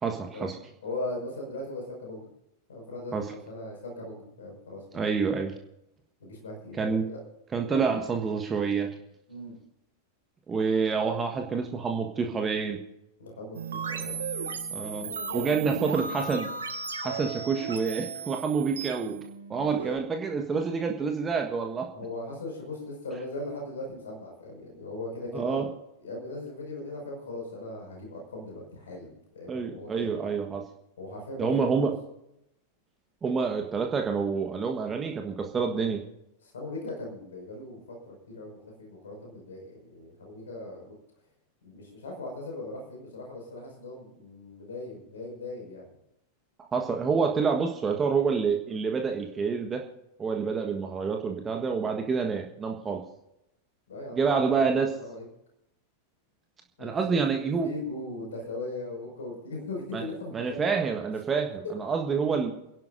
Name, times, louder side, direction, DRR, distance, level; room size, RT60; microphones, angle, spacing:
voice 1, 0.0-0.6 3.1-3.3 4.9-5.5 6.8-7.1 7.5-8.9 10.5-12.8 14.7-16.5 17.0-19.2 19.5-21.9 25.3-25.7 29.5-30.6 31.4-31.9 33.2-36.0 46.6-49.8 50.2-53.0 54.1-54.9 56.8-57.7 59.9-60.0 60.3-62.5, right 5 dB, 20° right, 3 dB, 1.5 m, -28 dB
voice 2, 0.8-2.3 2.7-5.1 6.2-7.2 7.7-7.9 9.3-9.5 13.2-14.1 14.9-16.3 21.9-25.7 26.0-30.1 31.0-31.9 36.4-38.0 38.3-41.0 41.6-45.8 53.9-55.3 56.8-60.8, left 2 dB, 65° left, 1 dB, 5.8 m, -39 dB
sound 1, 13.5-20.0, right 5 dB, 70° right, 1.5 m, -35 dB
29.0 x 11.5 x 2.7 m, 0.84 s
figure-of-eight pair, 90°, 0 cm